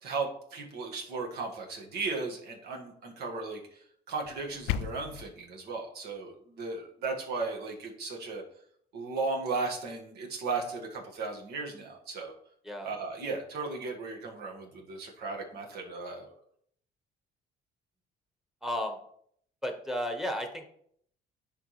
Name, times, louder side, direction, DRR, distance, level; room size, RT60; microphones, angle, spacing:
voice 1, 0.0-3.6 4.1-8.4 8.9-12.3 12.8-16.3, right 4 dB, 70° right, 1 dB, 1.7 m, -36 dB
sound 1, 4.2-5.2, left 10 dB, 90° left, 0.4 m, -34 dB
voice 2, 18.6-19.0 19.6-20.6, equal, ahead, 4 dB, 1.2 m, -33 dB
10.5 x 3.7 x 3.2 m, 0.66 s
cardioid pair, 110°, 17 cm